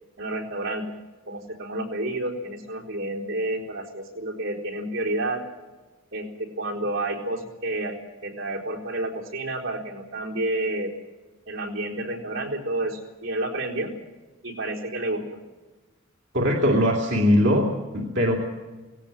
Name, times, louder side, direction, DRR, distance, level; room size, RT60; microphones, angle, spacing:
voice 1, 0.2-0.9 1.3-5.4 6.1-8.0 8.2-10.9 11.5-13.9 14.4-15.2, right 1 dB, 70° right, -1 dB, 4.1 m, -30 dB
voice 2, 16.3-18.4, equal, 55° right, 0 dB, 2.5 m, -21 dB
18.0 x 17.0 x 8.9 m, 1.2 s
head